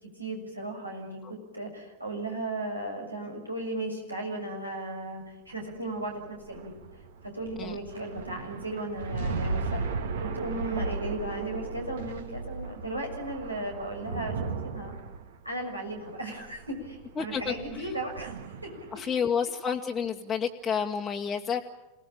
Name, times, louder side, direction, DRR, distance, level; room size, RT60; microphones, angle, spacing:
voice 1, 0.2-6.7 7.2-9.8 10.2-15.0 15.4-18.3 18.6-18.7, right 1 dB, 85° right, 1 dB, 6.5 m, -36 dB
sound 1, 5.5-19.1, right 4 dB, 60° right, 2.2 m, -36 dB
voice 2, 17.2-17.5 18.9-21.6, left 7 dB, 20° left, -1 dB, 1.4 m, -29 dB
28.0 x 19.0 x 8.8 m, 0.98 s
figure-of-eight pair, 90°, 0 cm